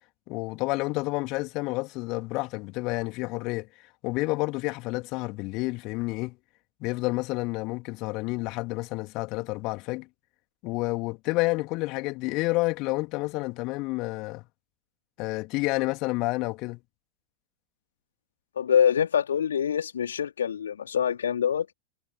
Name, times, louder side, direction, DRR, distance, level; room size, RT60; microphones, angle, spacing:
voice 1, 0.3-6.4 6.8-10.1 10.6-14.4 15.2-16.8, left 24 dB, 40° left, 3.1 m, -29 dB
voice 2, 18.6-21.7, left 8 dB, 65° left, 4.0 m, -25 dB
figure-of-eight pair, 90°, 0 cm